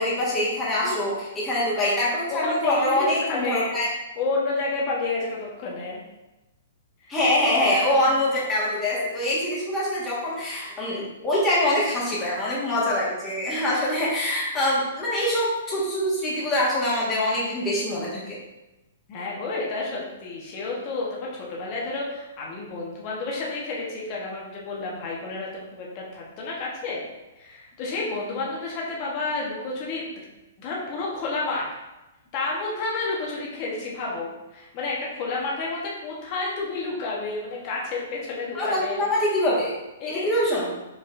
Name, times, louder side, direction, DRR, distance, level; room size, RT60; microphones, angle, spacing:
voice 1, 0.0-3.9 7.1-18.3 38.5-39.7 40.1-40.7, left 1 dB, 15° left, -6 dB, 1.5 m, -24 dB
voice 2, 2.3-3.7 4.2-6.0 7.5-8.2 19.1-27.0 27.4-30.1 30.6-31.6 32.3-39.0 40.0-40.6, left 3 dB, 35° left, -3 dB, 1.1 m, -30 dB
4.8 x 4.0 x 2.5 m, 1.0 s
hypercardioid pair, 150°, 0 cm